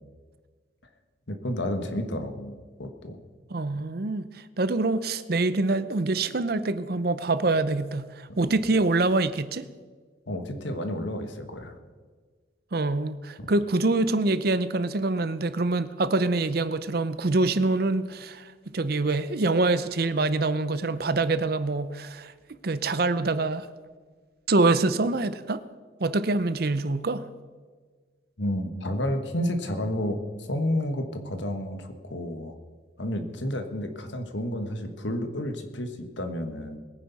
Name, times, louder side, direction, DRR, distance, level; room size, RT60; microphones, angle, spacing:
voice 1, 1.3-3.2 8.3-8.5 10.3-11.7 13.4-13.5 28.4-32.6 33.0-36.8, left 1 dB, 75° left, 1.6 m, -31 dB
voice 2, 3.5-4.3 4.6-9.6 12.7-22.3 22.6-23.7 24.5-25.6 26.0-27.3, right 3 dB, 55° right, 0.6 m, -25 dB
21.5 x 9.7 x 4.1 m
head